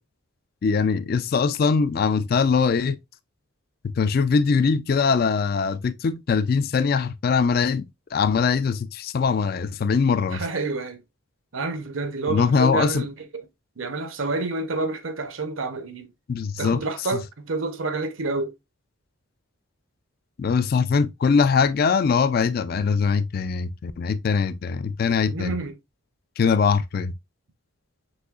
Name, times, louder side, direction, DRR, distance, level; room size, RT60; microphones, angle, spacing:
voice 1, 0.6-3.0 3.8-10.4 12.3-13.0 16.3-16.8 17.1-17.2 20.4-25.6 26.4-27.1, left 5 dB, 45° left, 0.3 m, -22 dB
voice 2, 10.3-11.0 11.5-13.4 13.8-16.1 16.6-18.5 25.3-25.7, right 3 dB, 75° right, 0.8 m, -29 dB
6.2 x 2.8 x 2.3 m
head